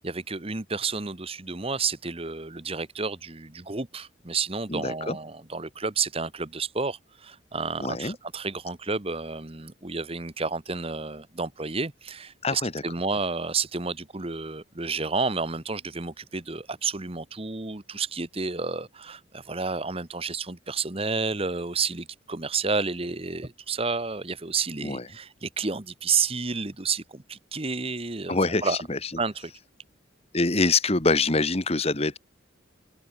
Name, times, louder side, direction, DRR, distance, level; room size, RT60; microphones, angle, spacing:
voice 1, 0.0-28.8 29.2-29.5, right 4 dB, 30° right, 1.3 m, -31 dB
voice 2, 4.7-5.2 7.8-8.1 12.4-12.7 24.8-25.0 28.3-29.0 30.3-32.2, left 3 dB, 30° left, 1.7 m, -25 dB
head